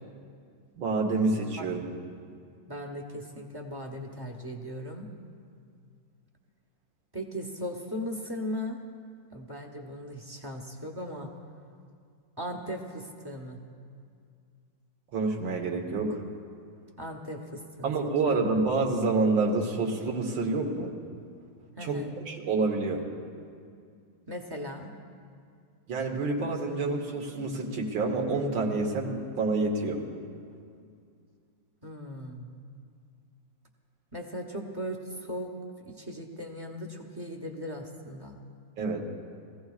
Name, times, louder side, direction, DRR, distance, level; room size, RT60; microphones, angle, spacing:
voice 1, 0.8-1.9 15.1-16.2 17.8-20.9 21.8-22.0 22.3-23.0 25.9-30.0 38.8-39.1, right 3 dB, 90° right, 1 dB, 2.0 m, -28 dB
voice 2, 2.7-5.1 7.1-8.8 9.3-11.3 12.4-13.6 17.0-17.9 18.3-18.4 21.8-22.1 24.3-24.9 31.8-32.5 34.1-35.5 35.8-38.4, equal, 25° right, 2 dB, 0.5 m, -38 dB
22.0 x 15.5 x 2.4 m, 2.3 s
omnidirectional pair, 2.0 m